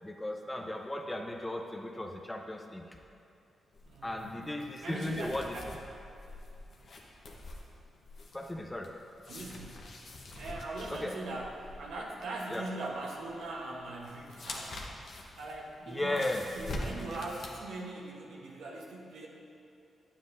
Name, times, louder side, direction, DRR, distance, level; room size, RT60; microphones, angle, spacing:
voice 1, 0.0-2.9 4.0-5.6 8.3-9.0 10.9-11.2 12.5-12.7 15.9-16.5, left 1 dB, 15° left, 3 dB, 0.8 m, -36 dB
sound 1, 3.7-17.5, left 1 dB, 65° left, 1.0 m, -46 dB
voice 2, 3.9-4.5 4.8-5.7 9.3-9.9 10.4-14.8 15.4-16.2 16.5-19.3, right 2 dB, 85° right, -2 dB, 1.1 m, -41 dB
9.6 x 7.3 x 2.7 m, 2.7 s
supercardioid pair, 55°, 0 cm